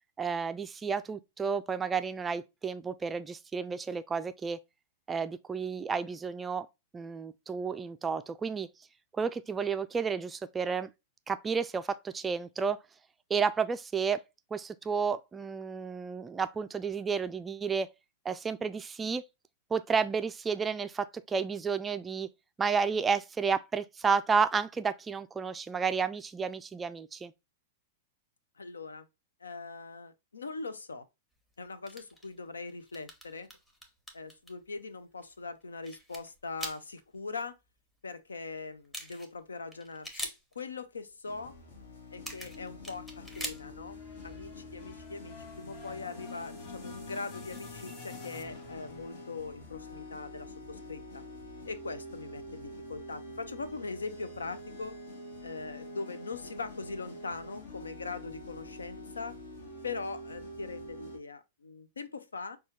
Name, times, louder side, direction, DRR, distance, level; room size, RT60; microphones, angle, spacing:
voice 1, 0.2-4.6 5.1-6.7 6.9-8.7 9.1-10.9 11.3-12.8 13.3-14.2 14.5-17.9 18.2-19.2 19.7-22.3 22.6-27.3, right 5 dB, 15° right, 0.3 m, -31 dB
voice 2, 28.6-29.1 29.4-31.1 31.6-33.5 34.1-37.6 38.0-40.3 40.6-41.5 42.1-51.2 51.7-55.0 55.4-59.4 59.8-62.6, left 4 dB, 75° left, 0.5 m, -41 dB
sound 1, 31.9-32.4 32.7-34.5 35.2-35.3 35.6-37.0 38.6-38.7 38.8-39.4 39.7-40.6 42.1-43.9, equal, 10° left, 0.9 m, -43 dB
sound 2, 41.2-61.2, left 1 dB, 60° left, 1.1 m, -46 dB
sound 3, 42.1-50.5, left 5 dB, 40° left, 0.9 m, -50 dB
5.4 x 2.3 x 3.0 m
figure-of-eight pair, 100°, 0 cm